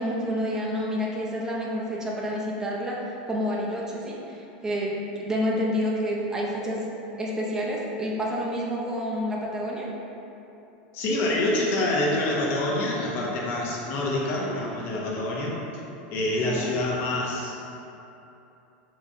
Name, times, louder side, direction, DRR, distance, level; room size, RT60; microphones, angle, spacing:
voice 1, 0.0-6.9 7.2-9.9 16.4-16.7, equal, 10° right, -4 dB, 0.6 m, -29 dB
voice 2, 10.9-15.6 16.1-17.6, left 1 dB, 45° left, -3 dB, 0.8 m, -26 dB
4.0 x 3.1 x 3.6 m, 2.9 s
supercardioid pair, 140°, 5 cm